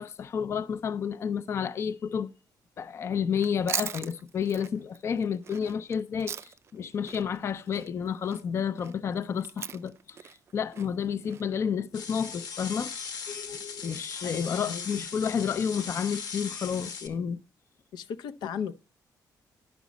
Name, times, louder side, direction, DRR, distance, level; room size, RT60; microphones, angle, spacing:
voice 1, 0.0-2.3 2.8-13.0 13.3-17.4, left 7 dB, 40° left, 0.4 m, -31 dB
Chewing mastication, 3.3-6.8 7.1-11.4, right 7 dB, 40° right, 0.3 m, -39 dB
sound 1, 11.9-17.1, left 5 dB, 65° left, 1.0 m, -38 dB
voice 2, 14.2-15.1 17.9-18.8, left 7 dB, 85° left, 0.6 m, -36 dB
11.0 x 6.0 x 4.0 m
cardioid pair, 150°, 7 cm